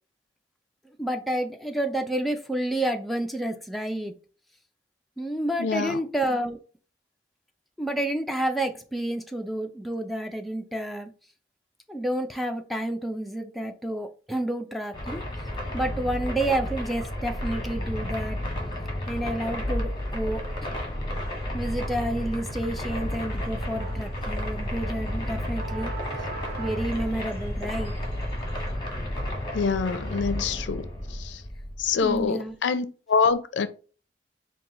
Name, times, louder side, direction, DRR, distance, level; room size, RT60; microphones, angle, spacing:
voice 1, 1.0-4.1 5.2-6.6 7.8-11.1 11.9-15.2 15.7-18.4 19.1-20.4 21.5-25.9 26.6-27.9 31.9-32.5, right 1 dB, ahead, 0.4 m, -29 dB
voice 2, 5.6-6.0 29.5-31.4 31.8-33.7, left 5 dB, 85° left, 0.4 m, -26 dB
sound 1, 14.9-32.3, left 1 dB, 25° left, 1.0 m, -32 dB
sound 2, 21.1-28.7, right 2 dB, 60° right, 0.8 m, -40 dB
4.5 x 2.3 x 3.6 m
head